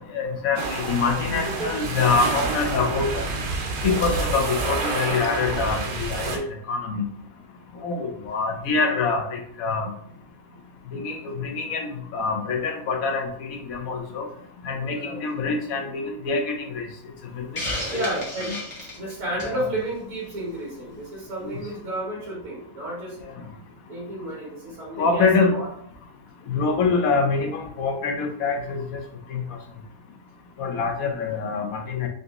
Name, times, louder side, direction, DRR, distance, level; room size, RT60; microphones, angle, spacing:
voice 1, 0.1-3.2 3.8-6.4 6.7-7.1 7.8-9.9 10.9-14.3 14.6-16.9 17.4-17.6 17.9-18.0 18.4-18.6 19.4-19.6 21.4-21.5 25.0-25.5 26.5-29.0 29.3-29.4 30.6-32.1, left 4 dB, 65° left, 4 dB, 1.1 m, -25 dB
sound 1, 0.6-6.4, right 3 dB, 90° right, 1.3 m, -28 dB
voice 2, 1.3-2.0 14.8-15.2 17.9-18.6 18.9-23.2 23.9-25.7 26.6-26.8, right 1 dB, 70° right, -4 dB, 1.5 m, -32 dB
Hiss, 17.6-19.6, left 1 dB, 25° left, 0.9 m, -32 dB
3.9 x 2.6 x 3.5 m, 0.66 s
omnidirectional pair, 1.7 m